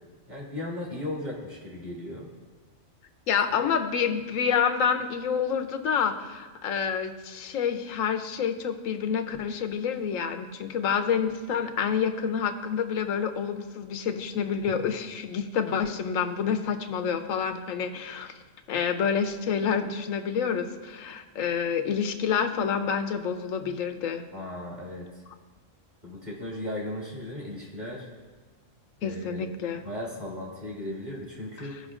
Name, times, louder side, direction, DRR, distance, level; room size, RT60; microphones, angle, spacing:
voice 1, 0.3-2.3 24.3-25.1 26.0-28.1 29.0-29.4 29.8-31.7, left 1 dB, 35° right, -4 dB, 2.2 m, -36 dB
voice 2, 3.3-18.3 18.7-24.2 29.0-29.8, left 7 dB, 85° left, 7 dB, 1.1 m, -28 dB
16.5 x 5.7 x 2.4 m, 1.3 s
omnidirectional pair, 1.3 m